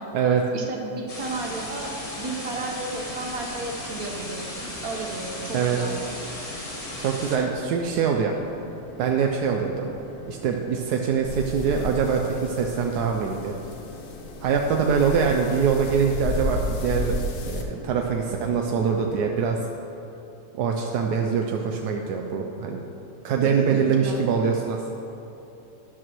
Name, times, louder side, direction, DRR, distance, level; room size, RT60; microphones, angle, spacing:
voice 1, 0.5-6.1 23.4-24.3, right 2 dB, 65° right, 1 dB, 1.7 m, -33 dB
sound 1, 1.1-7.4, left 1 dB, 25° left, 1.6 m, -36 dB
sound 2, 1.2-19.3, left 2 dB, 40° left, 1.1 m, -43 dB
voice 2, 7.0-8.3 9.0-9.9 10.3-13.5 14.4-19.6 20.6-22.8 23.2-24.9, right 6 dB, 85° right, 2 dB, 1.2 m, -24 dB
sound 3, 11.2-17.6, left 2 dB, 70° left, 1.4 m, -33 dB
12.5 x 11.0 x 3.1 m, 3.0 s
omnidirectional pair, 1.7 m